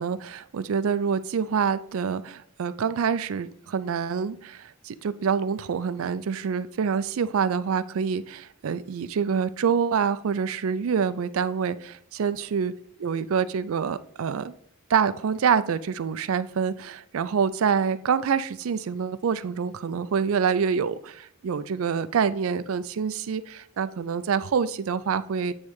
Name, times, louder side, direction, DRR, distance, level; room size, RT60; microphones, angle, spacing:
voice 1, 0.0-12.7 13.0-14.5 14.9-25.5, right 6 dB, 70° right, 14 dB, 0.4 m, -26 dB
8.6 x 3.2 x 4.7 m, 0.66 s
head